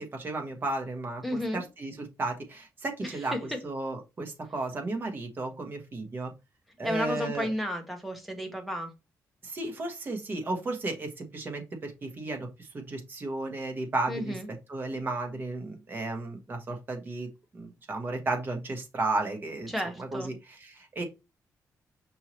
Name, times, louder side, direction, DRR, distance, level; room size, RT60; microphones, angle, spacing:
voice 1, 0.0-1.2 1.5-1.9 2.2-3.3 3.6-6.3 6.8-7.5 9.4-14.3 14.7-17.3 17.5-20.3 20.6-21.0, right 2 dB, 30° right, 4 dB, 1.1 m, -34 dB
voice 2, 1.2-1.6 3.0-3.6 6.8-8.9 14.1-14.5 19.7-20.3, equal, ahead, 3 dB, 1.0 m, -33 dB
5.5 x 3.0 x 2.9 m, 0.25 s
wide cardioid pair, 145°, 7 cm